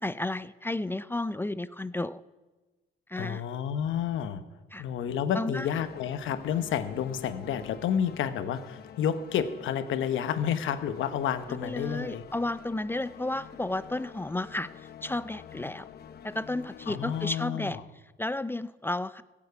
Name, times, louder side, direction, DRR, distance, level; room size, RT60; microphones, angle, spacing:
voice 1, 0.0-2.2 3.1-3.4 4.7-4.8 5.3-5.7 11.5-14.7 15.0-15.9 16.2-17.8 18.2-19.2, left 2 dB, 10° left, 15 dB, 0.4 m, -32 dB
voice 2, 3.2-4.4 4.8-12.2 16.9-17.8, left 8 dB, 80° left, 10 dB, 1.0 m, -30 dB
sound 1, 5.6-17.4, left 8 dB, 55° left, 0.8 m, -48 dB
15.5 x 7.3 x 8.1 m, 1.2 s
cardioid pair, 90°, 20 cm